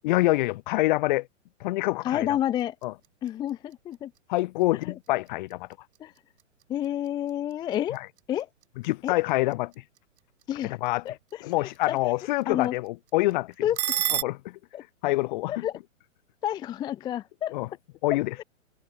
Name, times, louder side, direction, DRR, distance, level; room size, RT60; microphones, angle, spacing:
voice 1, 0.0-1.3 1.6-2.3 2.8-2.9 4.3-5.7 7.9-8.1 8.8-9.7 10.6-11.1 11.4-13.7 14.1-14.6 15.0-15.7 17.5-17.7 18.0-18.4, left 19 dB, 35° left, 1.3 m, -26 dB
voice 2, 2.0-2.8 3.2-4.1 6.0-6.1 6.7-8.0 8.3-8.5 9.0-9.2 10.5-10.8 11.0-12.0 12.5-12.7 13.6-14.1 14.7-14.8 15.5-15.8 16.4-17.6 18.1-18.4, left 11 dB, 10° left, 0.7 m, -30 dB
sound 1, 2.4-14.2, right 11 dB, 55° right, 4.8 m, -39 dB
hypercardioid pair, 140°, 39 cm